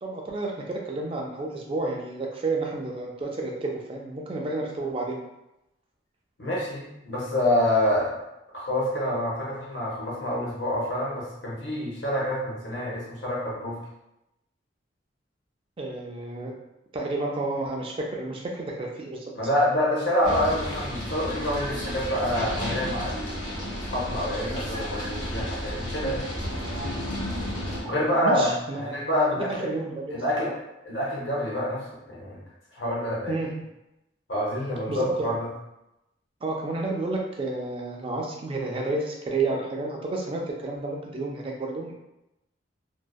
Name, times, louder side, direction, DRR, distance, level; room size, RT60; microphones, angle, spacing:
voice 1, 0.0-5.2 15.8-16.6 16.9-19.2 28.2-30.5 33.3-33.5 34.9-35.3 36.4-41.9, right 2 dB, 30° right, 0 dB, 0.3 m, -31 dB
voice 2, 6.4-8.1 8.5-13.8 19.3-26.2 27.8-29.7 30.1-30.5 30.8-32.4 32.7-33.4 34.3-35.5, left 1 dB, 65° left, -4 dB, 0.7 m, -27 dB
sound 1, 20.2-27.8, equal, 85° left, 1.1 m, -32 dB
2.6 x 2.1 x 2.2 m, 0.89 s
head